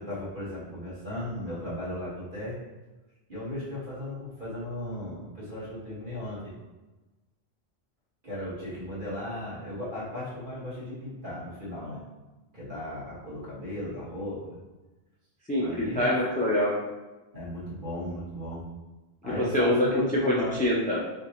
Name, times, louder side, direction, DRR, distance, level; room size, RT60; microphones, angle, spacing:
voice 1, 0.0-2.6 3.3-6.5 8.2-12.0 12.5-14.4 15.6-16.1 17.3-18.6 19.2-20.6, left 1 dB, 55° right, -9 dB, 1.8 m, -36 dB
voice 2, 15.5-16.8 19.2-21.0, left 1 dB, 10° left, -5 dB, 0.4 m, -25 dB
3.9 x 3.5 x 2.9 m, 1.1 s
omnidirectional pair, 1.1 m